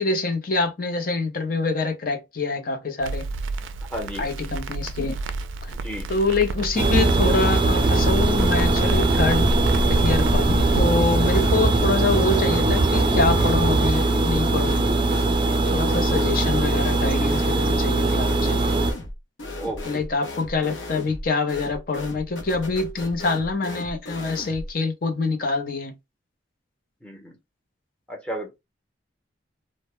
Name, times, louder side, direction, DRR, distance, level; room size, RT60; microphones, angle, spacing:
voice 1, 0.0-3.3 4.2-5.2 5.6-5.7 6.1-9.5 9.9-14.9 15.7-18.7 19.9-25.9, left 3 dB, 50° left, 0.6 m, -25 dB
Crackle, 3.0-10.8, right 1 dB, 90° right, 0.3 m, -29 dB
voice 2, 3.9-4.3 5.7-6.2 19.6-20.0 27.0-27.3 28.1-28.6, right 1 dB, 5° left, 0.8 m, -33 dB
sound 1, 6.8-18.9, right 2 dB, 25° right, 0.4 m, -20 dB
sound 2, 11.2-11.9 12.1-24.7, left 2 dB, 85° left, 0.6 m, -37 dB
2.1 x 2.1 x 2.9 m
head